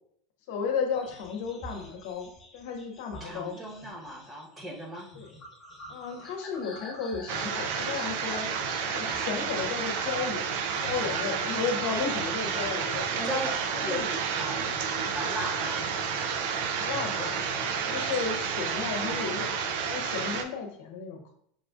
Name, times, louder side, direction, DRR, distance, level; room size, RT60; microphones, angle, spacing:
voice 1, 0.5-3.6 5.2-5.3 5.9-8.5 8.9-10.5 10.8-13.4 13.7-14.1 16.8-17.5 17.8-21.3, left 6 dB, 70° left, 4 dB, 0.7 m, -34 dB
sound 1, 0.9-11.4 11.7-12.3 12.6-14.1 14.6-14.8 15.1-15.4 15.9-18.0, left 1 dB, 30° left, 1.1 m, -48 dB
voice 2, 3.2-5.1 13.2-13.5 13.8-14.8 15.1-15.9, equal, 25° right, 0 dB, 1.1 m, -37 dB
sound 2, 7.3-20.4, right 6 dB, 70° right, 0.4 m, -30 dB
5.7 x 2.4 x 2.4 m, 0.66 s
hypercardioid pair, 100°, 0 cm